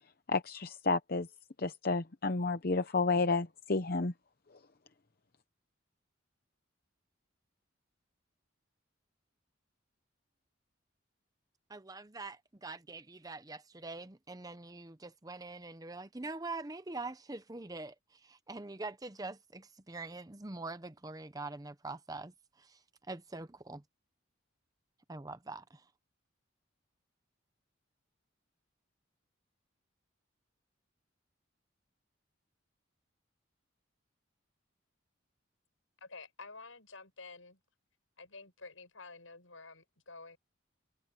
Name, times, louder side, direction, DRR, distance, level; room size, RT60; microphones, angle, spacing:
voice 1, 0.3-1.3 1.6-4.1, left 3 dB, 45° left, 0.8 m, -31 dB
voice 2, 11.7-17.9 18.2-22.3 22.6-22.8 23.1-23.8 25.1-25.8, right 3 dB, 20° right, 0.7 m, -44 dB
voice 3, 36.0-37.6 38.2-40.4, left 3 dB, 80° left, 6.9 m, -50 dB
head